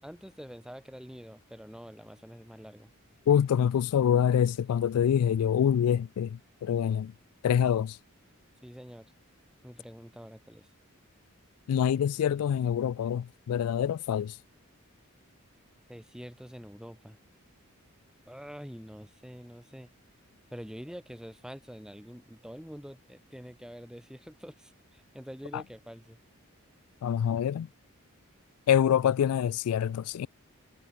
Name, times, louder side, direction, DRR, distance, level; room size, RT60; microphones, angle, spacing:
voice 1, 0.0-2.9 8.6-9.1 9.6-10.7 15.9-17.2 18.3-19.9 20.5-26.2, equal, 5° right, 4.4 m, -46 dB
voice 2, 3.3-7.1 7.4-8.0 11.7-14.4 25.5-25.6 27.0-27.7 28.7-30.3, left 9 dB, 85° left, 0.3 m, -26 dB
head